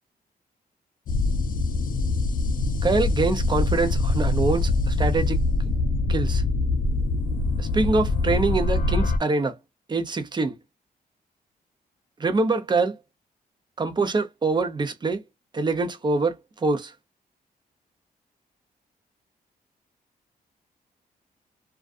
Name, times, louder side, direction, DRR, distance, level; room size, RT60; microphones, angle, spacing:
sound 1, 1.1-9.2, left 2 dB, 60° left, 0.4 m, -24 dB
voice 1, 2.8-5.4 6.1-6.4 7.6-9.6 9.9-10.6 12.2-13.0 13.8-15.2 15.5-16.9, right 3 dB, 30° right, 0.6 m, -24 dB
2.3 x 2.3 x 2.4 m
cardioid pair, 120°, 16 cm